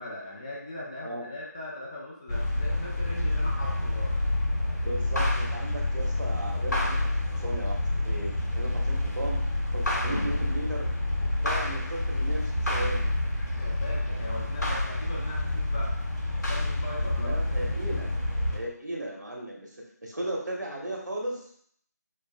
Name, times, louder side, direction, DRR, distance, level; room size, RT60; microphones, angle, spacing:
voice 1, 0.0-4.2 13.6-15.9 16.5-17.3, left 1 dB, 20° left, -4 dB, 0.7 m, -39 dB
sound 1, 2.3-18.6, left 1 dB, 80° left, 1.5 m, -28 dB
voice 2, 4.8-9.4 9.7-10.9 11.4-13.1 17.2-18.1 18.5-19.7 20.0-21.6, right 1 dB, 80° right, -1 dB, 1.5 m, -36 dB
5.2 x 3.8 x 2.2 m, 0.63 s
figure-of-eight pair, 165°, 10 cm